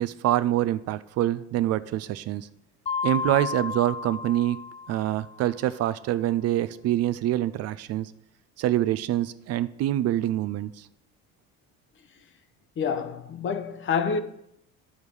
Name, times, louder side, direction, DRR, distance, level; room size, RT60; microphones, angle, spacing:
voice 1, 0.0-2.5 3.0-4.6 4.9-8.1 8.6-10.9, right 13 dB, 55° right, 0.5 m, -25 dB
Mallet percussion, 2.9-5.5, left 5 dB, 20° left, 0.4 m, -32 dB
voice 2, 12.8-14.2, left 6 dB, 40° left, 0.8 m, -27 dB
12.5 x 5.3 x 4.8 m
cardioid pair, 105°, 30 cm